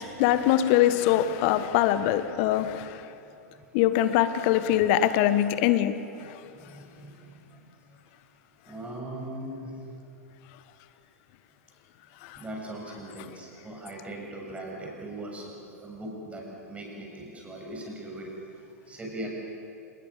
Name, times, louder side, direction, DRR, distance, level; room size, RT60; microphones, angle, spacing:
voice 1, 0.0-3.0 3.7-5.9 6.3-6.4 12.2-12.4, left 12 dB, 45° left, 12 dB, 1.4 m, -23 dB
voice 2, 6.2-7.5 8.7-9.8 12.4-18.3 18.9-19.3, right 1 dB, 15° right, -1 dB, 7.3 m, -40 dB
29.0 x 20.0 x 7.4 m, 2.6 s
figure-of-eight pair, 100°, 9 cm